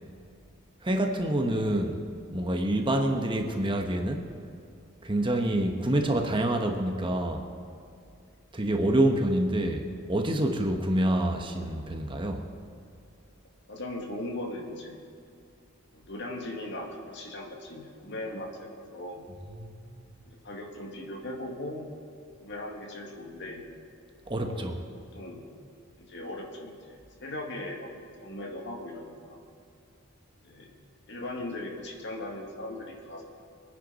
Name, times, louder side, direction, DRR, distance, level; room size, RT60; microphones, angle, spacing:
voice 1, 0.8-2.0 2.3-4.3 5.0-7.4 8.5-12.4 19.6-20.0 24.3-24.8, right 1 dB, 25° right, 3 dB, 1.1 m, -27 dB
voice 2, 13.7-15.0 15.9-19.2 20.2-21.9 22.4-23.6 24.4-25.4 26.0-27.9 28.2-29.4 30.4-30.7 31.1-33.2, left 1 dB, 55° left, 1 dB, 2.1 m, -39 dB
23.5 x 10.0 x 4.2 m, 2.4 s
head